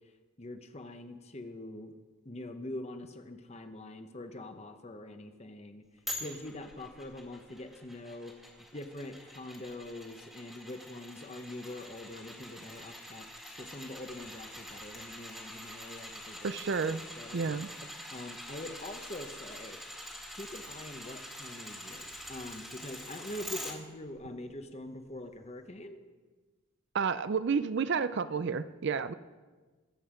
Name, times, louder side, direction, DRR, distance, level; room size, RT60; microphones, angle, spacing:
voice 1, 0.4-1.9 2.2-5.8 6.2-8.3 8.7-16.5 16.9-17.5 18.1-19.8 20.4-26.0, left 1 dB, 30° left, 7 dB, 0.9 m, -44 dB
sound 1, 6.1-23.7 24.2-24.3, left 1 dB, ahead, 1.8 m, -45 dB
voice 2, 16.4-17.0 17.3-17.7 26.9-29.1, right 5 dB, 50° right, 14 dB, 0.4 m, -30 dB
22.0 x 7.8 x 5.1 m, 1.3 s
head